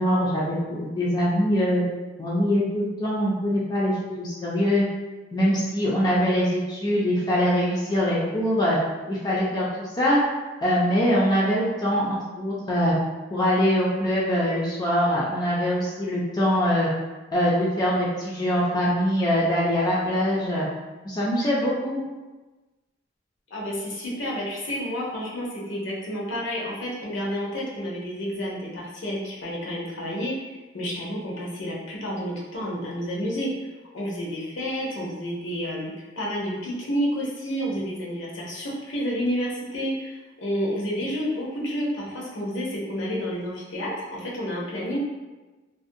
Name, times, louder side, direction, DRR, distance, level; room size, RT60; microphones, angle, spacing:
voice 1, 0.0-1.8 2.2-4.8 5.3-8.8 9.1-10.2 10.6-13.0 13.3-16.9 17.3-20.7 21.0-22.0, equal, 20° left, -6 dB, 0.3 m, -23 dB
voice 2, 23.5-33.5 33.9-45.0, equal, 70° left, -4 dB, 0.7 m, -30 dB
2.5 x 2.0 x 2.6 m, 1.2 s
head